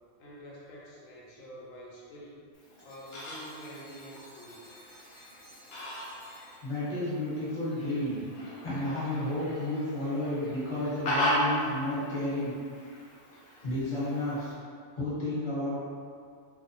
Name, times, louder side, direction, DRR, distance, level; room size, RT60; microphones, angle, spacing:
voice 1, 0.2-2.5 2.8-4.6, equal, 90° left, -5 dB, 1.0 m, -47 dB
Fowl, 2.5-14.5, equal, 60° left, 0.5 m, -37 dB
sound 1, 2.8-7.1, equal, 25° right, 0.6 m, -55 dB
voice 2, 6.6-12.5 13.6-14.5 14.9-15.8, left 1 dB, 30° left, -11 dB, 0.9 m, -32 dB
2.5 x 2.0 x 2.5 m, 2.2 s
omnidirectional pair, 1.3 m